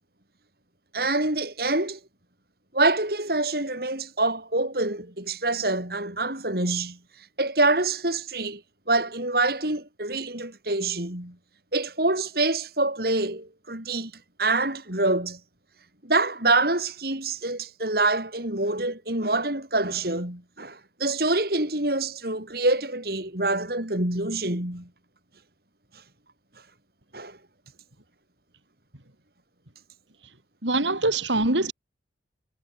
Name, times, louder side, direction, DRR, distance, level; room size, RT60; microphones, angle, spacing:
voice 1, 0.9-2.0 2.7-7.0 7.4-8.6 8.9-11.4 11.7-14.1 14.4-15.4 16.0-24.9 27.1-27.4, right 2 dB, 55° right, 6.8 m, -26 dB
voice 2, 30.6-31.7, right 2 dB, 85° right, 4.5 m, -23 dB
head